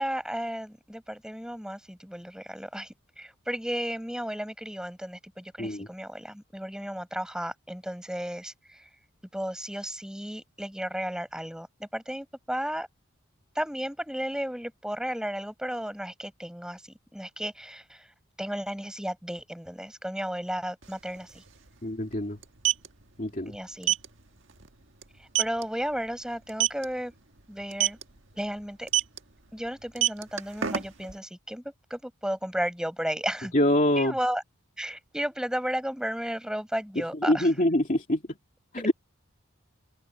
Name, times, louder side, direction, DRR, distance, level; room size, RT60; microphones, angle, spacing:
voice 1, 0.0-8.8 9.3-12.9 13.5-16.8 17.1-18.1 18.4-21.4 23.5-23.9 25.4-27.1 27.5-28.0 28.3-28.9 29.5-31.6 31.9-33.5 34.0-34.4 34.8-37.5, equal, 5° right, 7.7 m, -34 dB
sound 1, 20.8-20.9 21.2-21.3 22.4-22.9 23.8-24.1 24.5-24.7 25.0-25.1 25.3-25.6 26.5-26.8 27.7-28.0 28.9-29.2 29.8-31.1, right 12 dB, 55° right, 1.8 m, -24 dB
voice 2, 21.8-22.4 23.2-23.5 33.5-34.1 37.2-38.2 38.7-38.9, left 1 dB, 35° left, 2.7 m, -24 dB
head